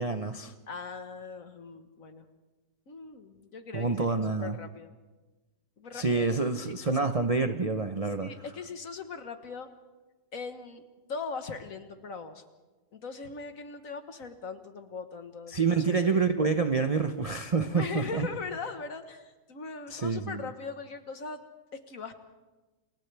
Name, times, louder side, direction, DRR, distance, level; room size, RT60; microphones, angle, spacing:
voice 1, 0.0-0.5 3.7-4.6 5.9-8.3 15.5-18.3 19.9-20.5, right 4 dB, 55° right, 7 dB, 0.4 m, -27 dB
voice 2, 0.7-2.3 2.9-4.9 5.8-6.2 6.6-6.7 7.0-7.3 8.2-9.7 10.3-10.8 11.1-12.4 12.9-16.3 17.6-21.4 21.9-22.1, left 4 dB, 50° left, 7 dB, 1.7 m, -40 dB
29.0 x 28.5 x 3.4 m, 1.2 s
omnidirectional pair, 1.9 m